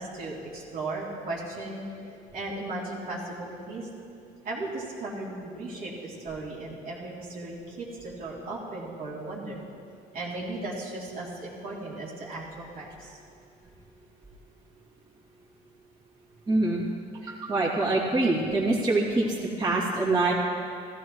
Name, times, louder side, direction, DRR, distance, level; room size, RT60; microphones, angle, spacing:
voice 1, 0.0-1.8 2.3-3.9 4.4-9.6 10.1-13.2, right 2 dB, 60° right, -5 dB, 3.1 m, -36 dB
voice 2, 16.5-16.8 17.2-20.3, right 2 dB, 25° right, -6 dB, 2.6 m, -25 dB
15.5 x 15.0 x 3.2 m, 2.5 s
cardioid pair, 110°, 17 cm